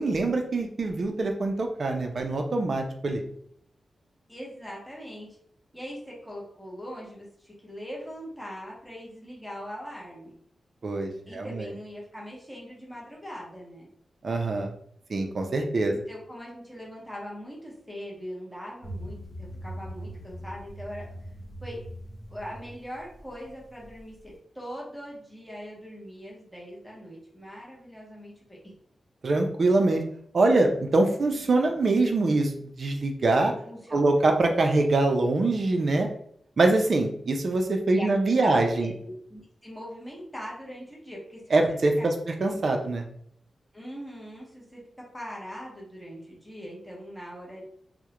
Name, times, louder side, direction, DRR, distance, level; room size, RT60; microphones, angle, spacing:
voice 1, 0.0-3.2 10.8-11.7 14.2-14.7 15.1-15.9 29.2-30.0 30.3-33.5 33.9-36.1 36.6-38.9 41.5-43.1, right 2 dB, 50° right, 4 dB, 0.3 m, -24 dB
voice 2, 4.3-5.3 5.7-10.3 11.3-13.9 15.9-21.0 21.6-21.8 22.3-28.7 33.6-34.2 37.9-41.4 42.0-42.1 43.7-44.8 45.1-47.6, equal, ahead, -4 dB, 0.7 m, -41 dB
sound 1, 18.8-24.3, equal, 45° left, 0.9 m, -41 dB
2.3 x 2.0 x 2.8 m, 0.65 s
wide cardioid pair, 145°, 0 cm